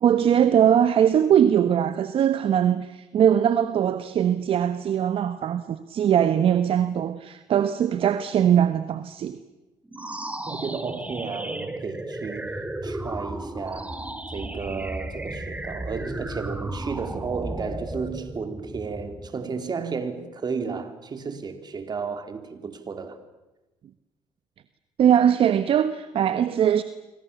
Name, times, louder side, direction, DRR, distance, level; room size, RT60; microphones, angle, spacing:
voice 1, 0.0-9.4 25.0-26.8, right 9 dB, 60° right, 1.3 m, -21 dB
sound 1, 9.8-19.4, right 1 dB, 15° right, 3.8 m, -34 dB
voice 2, 10.5-13.9 14.3-23.2, right 5 dB, 40° right, 3.9 m, -33 dB
27.5 x 25.0 x 7.2 m
supercardioid pair, 70°, 11 cm